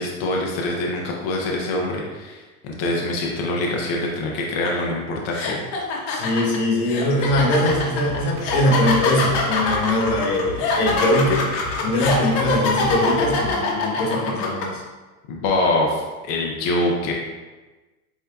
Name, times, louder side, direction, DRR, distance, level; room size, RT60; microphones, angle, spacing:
voice 1, 0.0-5.6 15.3-17.1, left 2 dB, 30° left, -1 dB, 0.5 m, -24 dB
sound 1, 4.6-4.8 5.3-14.6, left 4 dB, 50° left, 0.9 m, -24 dB
voice 2, 6.1-11.5 11.8-14.8, left 1 dB, 75° left, -1 dB, 1.4 m, -21 dB
sound 2, 7.2-13.5, left 1 dB, 75° right, 1.1 m, -35 dB
7.9 x 2.7 x 2.3 m, 1.2 s
supercardioid pair, 155°, 45 cm